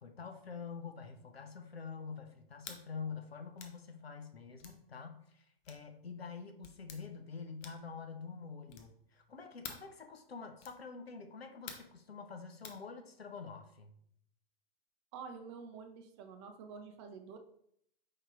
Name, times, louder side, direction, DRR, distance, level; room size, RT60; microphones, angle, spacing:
voice 1, 0.0-13.9, left 5 dB, 80° left, 6 dB, 0.7 m, -47 dB
sound 1, 2.6-2.8 3.6-3.8 4.6-4.8 5.6-5.9 6.6-7.0 7.6-7.9 8.7-9.0 9.6-9.9 10.6-10.8 11.7-12.0 12.6-12.8, left 7 dB, 25° left, 0.5 m, -49 dB
voice 2, 15.1-17.4, right 5 dB, 30° right, 6 dB, 0.4 m, -48 dB
4.7 x 4.4 x 2.4 m, 0.69 s
figure-of-eight pair, 105°, 30 cm